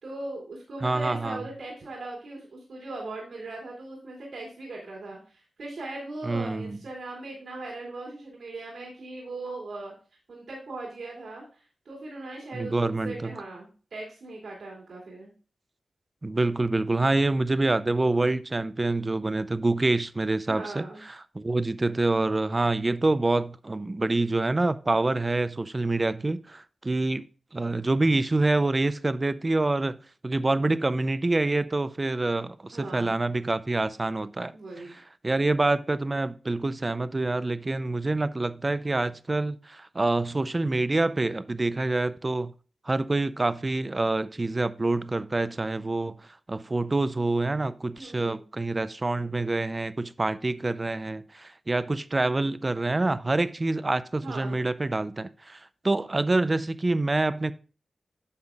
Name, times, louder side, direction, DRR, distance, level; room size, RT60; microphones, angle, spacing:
voice 1, 0.0-9.9 10.3-15.3 20.5-21.0 32.7-33.2 34.5-35.0 48.0-48.4 54.2-54.6, right 2 dB, 80° right, 2.7 m, -39 dB
voice 2, 0.8-1.4 6.2-6.8 12.5-13.3 16.2-27.2 27.5-29.9 30.2-34.5 35.2-42.5 42.8-57.5, right 2 dB, 25° right, 0.4 m, -26 dB
9.6 x 6.9 x 2.3 m
wide cardioid pair, 95°, 0 cm